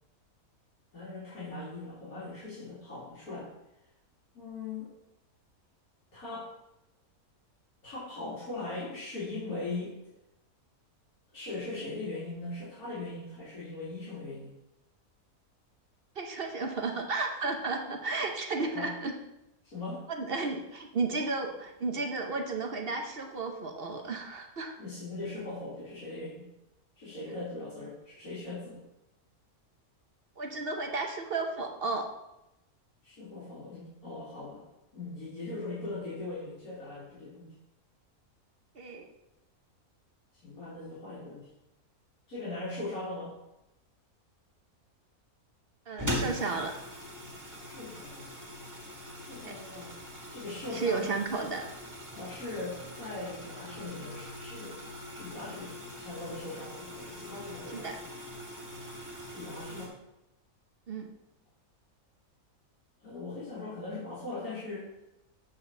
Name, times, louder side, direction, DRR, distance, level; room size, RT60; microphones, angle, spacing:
voice 1, 0.9-3.5 4.3-4.9 6.1-6.5 7.8-9.9 11.3-14.5 18.7-18.9 19.6-20.0 24.8-26.4 27.0-28.8 33.0-34.7 34.9-37.5 40.4-41.5 42.3-43.3 47.6-48.3 49.2-49.9 50.3-51.1 52.1-54.8 55.1-58.0 59.3-59.9 63.0-64.9, left 2 dB, 80° left, -10 dB, 3.0 m, -40 dB
voice 2, 16.2-19.1 20.1-24.7 30.4-32.1 38.7-39.1 45.9-46.7 49.4-49.5 50.7-51.6 57.7-58.0 60.9-61.1, right 3 dB, 45° right, 3 dB, 0.9 m, -33 dB
sound 1, 46.0-59.9, equal, 10° right, 1.8 m, -41 dB
7.9 x 4.1 x 6.6 m, 0.91 s
omnidirectional pair, 1.5 m